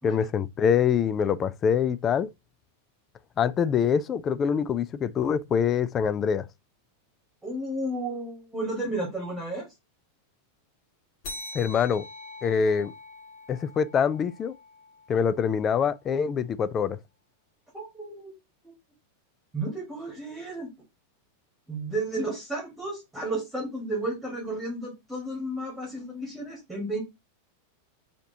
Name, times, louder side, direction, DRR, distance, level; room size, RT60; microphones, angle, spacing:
voice 1, 0.0-2.3 3.4-6.5 11.5-12.0 12.4-12.9 13.5-14.5 15.1-17.0, left 7 dB, 25° left, 0.3 m, -25 dB
voice 2, 7.4-9.7 17.7-18.3 18.6-18.7 19.5-20.7 21.7-27.0, right 2 dB, 5° right, 1.7 m, -32 dB
sound 1, 11.2-16.2, left 2 dB, 45° left, 1.2 m, -44 dB
5.0 x 2.9 x 2.8 m
figure-of-eight pair, 90°, 0 cm